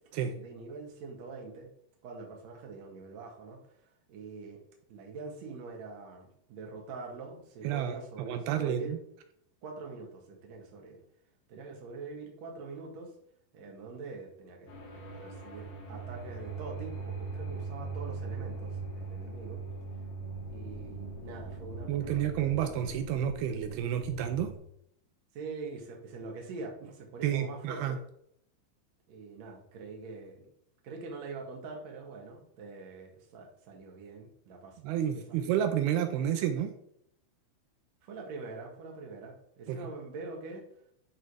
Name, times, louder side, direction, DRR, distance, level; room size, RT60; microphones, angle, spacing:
voice 1, 0.4-1.7 2.0-4.6 4.9-8.9 9.6-11.0 11.5-13.1 13.5-19.6 20.5-22.4 25.3-28.0 29.1-30.5 30.8-35.6 38.0-40.6, right 4 dB, 55° right, 0 dB, 2.4 m, -44 dB
voice 2, 7.6-9.0 21.9-24.5 27.2-28.0 34.8-36.7 39.7-39.8, right 10 dB, 85° right, 7 dB, 2.6 m, -30 dB
sound 1, 14.7-24.6, right 3 dB, 55° left, 3.1 m, -41 dB
10.5 x 3.7 x 4.9 m, 0.72 s
omnidirectional pair, 4.4 m